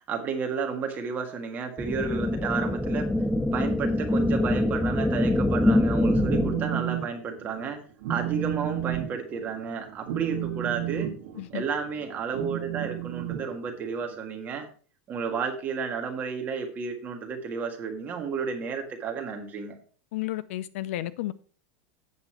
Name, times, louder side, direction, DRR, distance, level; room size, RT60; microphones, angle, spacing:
voice 1, 0.1-3.1 3.5-7.8 8.1-11.1 11.5-14.7 15.1-19.8, right 5 dB, 25° right, 1.7 m, -32 dB
sound 1, 1.8-6.8, left 1 dB, ahead, 0.3 m, -24 dB
Telephone, 6.0-7.1 7.4-7.7 8.0-14.1, right 13 dB, 75° right, 1.6 m, -33 dB
voice 2, 20.1-21.3, left 15 dB, 70° left, 0.6 m, -32 dB
8.5 x 6.8 x 4.4 m
supercardioid pair, 165°, 7 cm